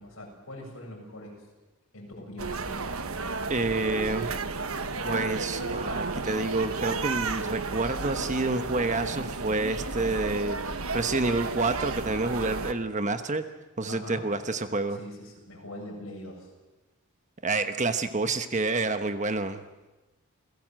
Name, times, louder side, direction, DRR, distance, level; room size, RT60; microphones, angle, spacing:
voice 1, 0.0-1.4 1.9-2.8 13.9-14.2 14.9-16.5, left 1 dB, 65° left, 0 dB, 7.6 m, -42 dB
sound 1, 2.4-12.7, right 3 dB, 70° right, 1.3 m, -32 dB
voice 2, 3.5-4.4 5.0-13.4 13.8-15.0 17.4-19.6, right 3 dB, 35° right, 9 dB, 1.1 m, -28 dB
29.0 x 17.5 x 7.7 m, 1.2 s
head